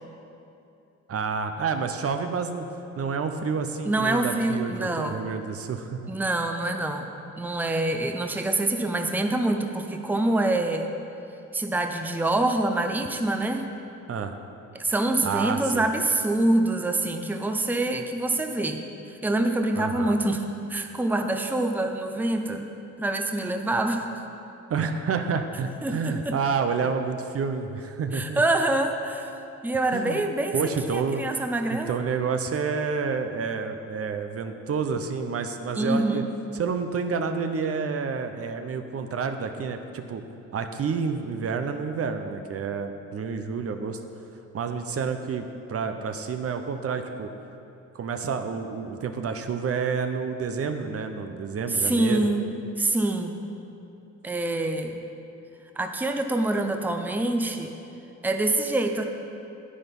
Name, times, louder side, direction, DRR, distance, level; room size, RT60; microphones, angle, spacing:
voice 1, 1.1-2.6 3.0-6.1 14.1-14.3 15.2-15.8 19.7-20.2 24.7-28.4 29.9-30.2 30.5-31.2 31.7-36.2 36.5-40.2 40.5-44.0 44.5-47.3 47.9-52.3, right 5 dB, 50° right, 7 dB, 0.8 m, -29 dB
voice 2, 3.8-5.2 6.1-7.1 7.4-10.9 11.5-13.6 14.7-18.8 19.1-20.4 20.7-22.7 23.0-24.2 25.8-26.4 28.1-29.3 29.6-32.0 35.7-36.3 51.7-53.4 54.2-55.0 55.8-57.7 58.2-59.0, right 2 dB, 5° right, 5 dB, 0.7 m, -25 dB
10.0 x 9.1 x 5.4 m, 2.7 s
cardioid pair, 90°, 30 cm